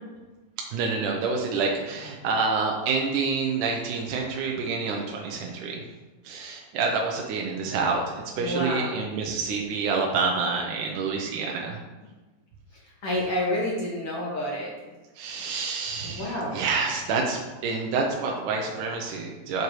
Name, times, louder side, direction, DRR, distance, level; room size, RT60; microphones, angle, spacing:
voice 1, 0.7-5.8 6.2-11.8 15.2-19.6, right 4 dB, 75° right, 0 dB, 2.0 m, -28 dB
voice 2, 8.4-9.0 13.0-14.7 16.2-16.6, left 1 dB, 50° left, -5 dB, 1.9 m, -28 dB
8.2 x 7.8 x 3.2 m, 1.2 s
omnidirectional pair, 4.3 m